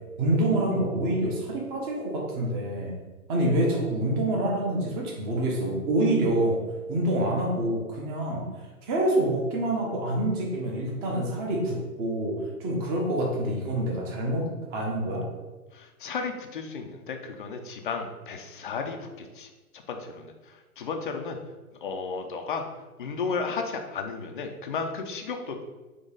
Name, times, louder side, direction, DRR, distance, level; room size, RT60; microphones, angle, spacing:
voice 1, 0.2-2.9 3.3-6.6 6.9-8.5 8.9-14.4 14.7-15.2, right 1 dB, 20° right, -1 dB, 0.9 m, -26 dB
voice 2, 15.7-21.4 21.8-22.6 23.0-25.6, left 5 dB, 35° left, 5 dB, 0.4 m, -34 dB
3.9 x 3.0 x 3.6 m, 1.2 s
figure-of-eight pair, 120°, 45 cm